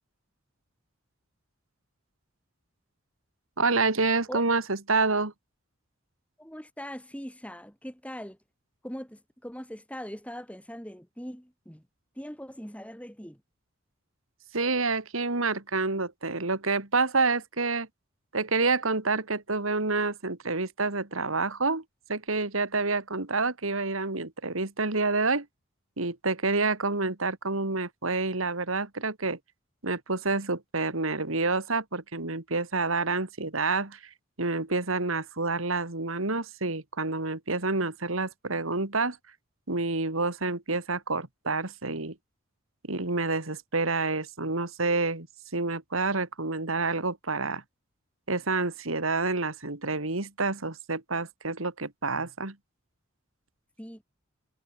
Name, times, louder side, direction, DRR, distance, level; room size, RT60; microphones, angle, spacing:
voice 1, 3.6-5.3 14.5-17.9 18.3-21.8 22.1-25.5 26.0-29.4 29.8-34.0 34.4-39.2 39.7-42.2 42.9-45.3 45.5-47.6 48.3-52.6, right 3 dB, 85° right, 2.6 m, -28 dB
voice 2, 6.4-8.4 8.8-11.9 12.2-13.4 53.8-54.0, equal, 5° left, 5.8 m, -41 dB
head